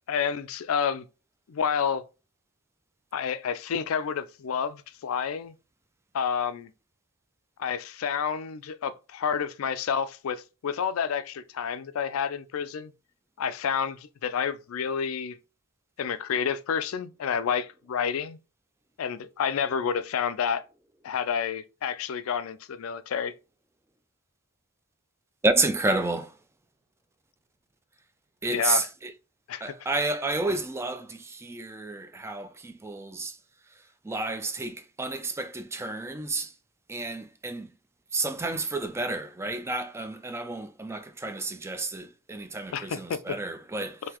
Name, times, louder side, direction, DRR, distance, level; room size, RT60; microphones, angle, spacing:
voice 1, 0.1-1.0 1.5-2.0 3.1-5.5 6.1-6.7 7.6-12.9 13.4-15.4 16.0-18.4 19.0-20.6 21.0-23.3 28.5-28.9 29.5-29.7 42.7-43.2, left 7 dB, 85° left, 0.4 m, -29 dB
voice 2, 25.4-26.3 28.4-29.1 29.6-33.4 34.0-36.5 36.9-37.7 38.1-44.0, right 2 dB, 15° right, 0.3 m, -30 dB
3.8 x 2.7 x 2.9 m
head